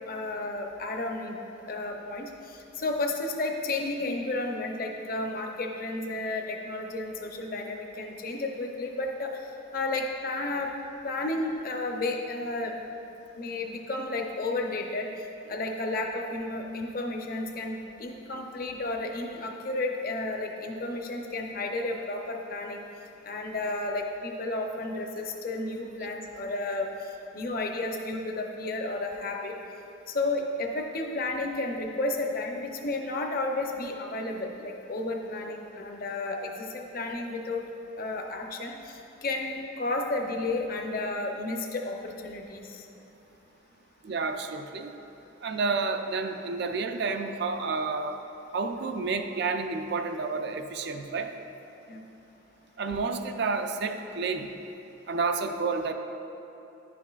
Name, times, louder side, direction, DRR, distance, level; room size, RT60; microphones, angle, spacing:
voice 1, 0.1-1.4 1.7-9.4 9.7-10.7 11.0-12.7 13.4-15.1 15.5-22.8 23.2-26.9 27.3-29.5 30.1-37.6 38.0-42.7 51.9-52.0, left 2 dB, 50° left, 2 dB, 0.6 m, -32 dB
voice 2, 44.0-45.0 45.4-48.2 48.5-51.3 52.8-54.5 55.1-55.9, right 4 dB, 60° right, 6 dB, 0.4 m, -30 dB
11.0 x 5.9 x 2.4 m, 2.8 s
head